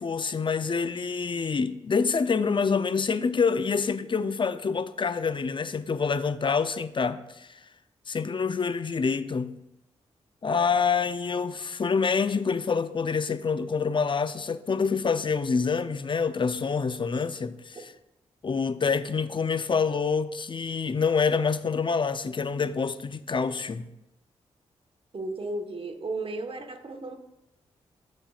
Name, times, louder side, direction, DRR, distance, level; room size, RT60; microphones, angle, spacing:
voice 1, 0.0-7.5 8.1-9.6 10.4-17.9 18.4-23.9, left 5 dB, 40° left, 0.6 m, -26 dB
voice 2, 25.1-27.2, right 2 dB, 45° right, 1.2 m, -34 dB
14.5 x 5.4 x 2.4 m
supercardioid pair, 40°, 13 cm